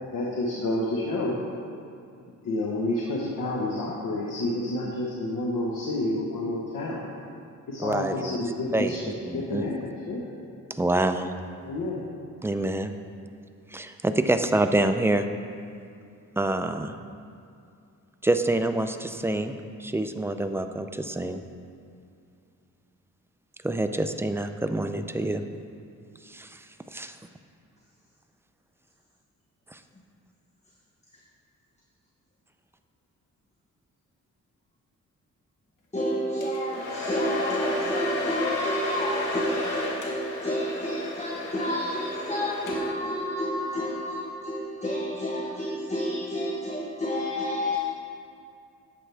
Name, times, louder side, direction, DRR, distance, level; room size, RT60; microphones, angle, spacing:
voice 1, 0.1-1.4 2.4-7.0 7.7-9.0 9.3-10.3 11.6-12.0, left 1 dB, 85° left, -3 dB, 1.2 m, -29 dB
voice 2, 7.8-9.7 10.7-11.3 12.4-12.9 13.7-15.3 16.4-16.9 18.2-21.4 23.6-25.4 26.3-26.6 26.9-27.2 29.7-29.8, right 2 dB, 10° right, 7 dB, 0.5 m, -27 dB
voice 3, 35.9-47.8, equal, 20° left, -1 dB, 1.0 m, -29 dB
Domestic sounds home sounds, 36.4-43.1, left 2 dB, 70° left, 1.6 m, -33 dB
11.0 x 7.6 x 3.4 m, 2.5 s
cardioid pair, 80°, 32 cm